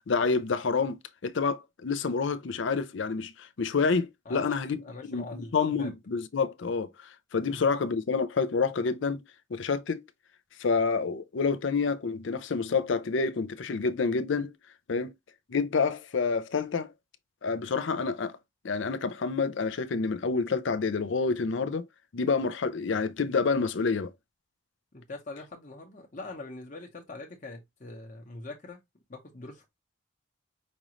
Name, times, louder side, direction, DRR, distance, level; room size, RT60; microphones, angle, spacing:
voice 1, 0.1-4.8 5.1-6.9 7.3-9.2 9.5-10.0 10.6-14.5 14.9-15.1 15.5-16.9 17.4-18.4 18.6-21.9 22.1-24.1, left 4 dB, 65° left, 0.5 m, -28 dB
voice 2, 4.2-5.9 7.4-7.7 24.9-28.8 29.1-29.7, left 2 dB, 40° left, 0.9 m, -43 dB
5.3 x 2.5 x 3.0 m
head